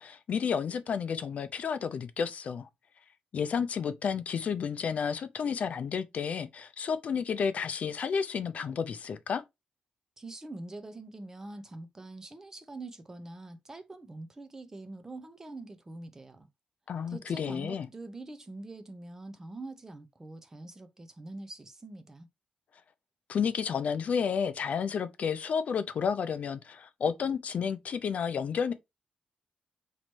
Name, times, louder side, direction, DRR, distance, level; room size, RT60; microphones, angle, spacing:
voice 1, 0.0-2.7 3.3-9.4 16.9-17.9 23.3-28.7, left 6 dB, 55° left, 0.4 m, -31 dB
voice 2, 10.2-16.5 17.1-22.3, right 2 dB, 20° right, 0.5 m, -44 dB
3.0 x 2.9 x 4.4 m
wide cardioid pair, 155°, 3 cm